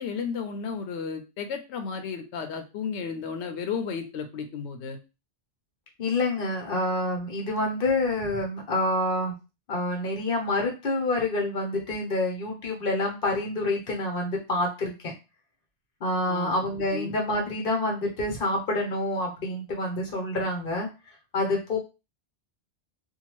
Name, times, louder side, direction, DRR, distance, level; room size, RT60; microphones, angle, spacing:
voice 1, 0.0-5.0 16.3-16.5 16.9-17.1, left 6 dB, 85° left, 7 dB, 0.9 m, -33 dB
voice 2, 6.0-9.3 9.7-15.1 16.0-20.9 21.3-21.8, left 2 dB, 55° left, 1 dB, 1.1 m, -27 dB
2.7 x 2.2 x 3.0 m, 0.29 s
omnidirectional pair, 1.1 m